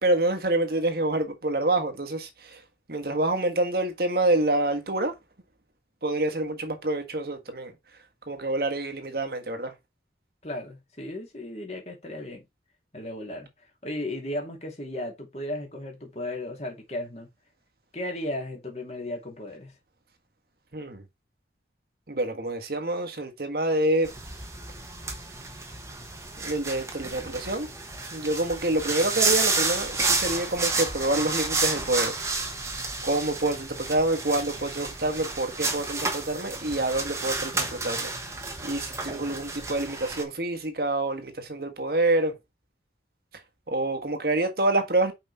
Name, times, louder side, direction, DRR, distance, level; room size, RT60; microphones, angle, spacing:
voice 1, 0.0-2.6 2.9-5.1 6.0-7.7 8.3-9.7 20.7-21.0 22.1-24.1 26.4-27.7 28.1-32.5 33.0-38.4 38.6-42.4 43.7-45.1, right 2 dB, 55° right, 1.5 m, -27 dB
voice 2, 10.4-12.4 12.9-13.5 13.8-17.3 17.9-19.7, left 1 dB, 35° left, 2.6 m, -35 dB
sound 1, 24.0-40.2, right 3 dB, 15° right, 1.3 m, -31 dB
5.9 x 5.2 x 4.1 m
head